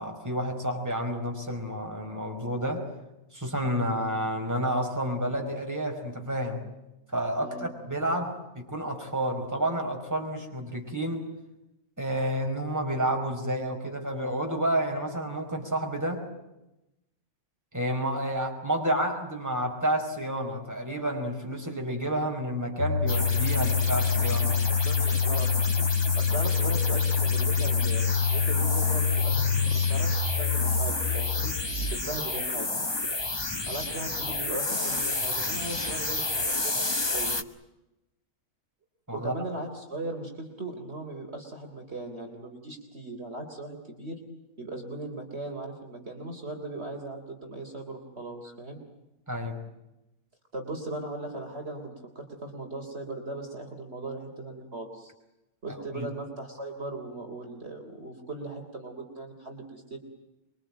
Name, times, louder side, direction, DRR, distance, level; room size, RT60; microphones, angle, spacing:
voice 1, 0.0-2.9 3.3-6.6 7.1-11.3 12.0-16.2 17.7-24.6 39.1-39.3 49.3-49.6 55.7-56.1, right 1 dB, 10° right, 2 dB, 5.1 m, -30 dB
voice 2, 7.4-7.7 24.5-28.1 28.3-29.4 29.7-31.5 31.9-32.7 33.7-36.9 37.1-37.4 39.1-44.2 44.6-48.8 50.5-55.1 55.6-60.0, right 2 dB, 50° right, 3 dB, 3.9 m, -38 dB
sound 1, 22.8-32.0, left 6 dB, 60° left, 2.4 m, -26 dB
sound 2, 23.1-37.4, left 2 dB, 20° left, 1.2 m, -31 dB
26.0 x 24.0 x 9.0 m, 0.94 s
omnidirectional pair, 1.5 m